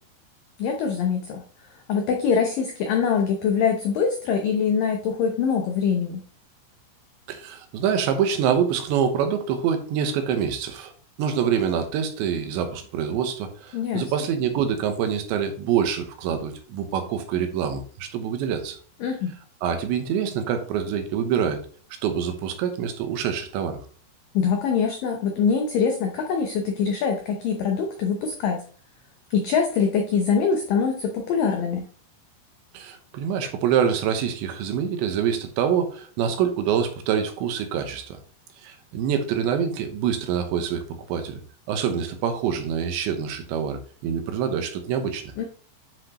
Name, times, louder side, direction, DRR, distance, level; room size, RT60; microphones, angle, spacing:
voice 1, 0.6-1.4 1.9-6.2 13.7-14.1 19.0-19.3 24.3-28.6 29.3-31.9 45.4-45.5, left 6 dB, 85° left, 4 dB, 1.9 m, -23 dB
voice 2, 7.3-10.9 11.2-18.8 19.6-21.6 22.0-23.8 32.7-38.2 38.6-41.4 41.7-45.3, right 8 dB, 80° right, 6 dB, 3.3 m, -25 dB
10.5 x 5.8 x 3.0 m, 0.43 s
omnidirectional pair, 5.2 m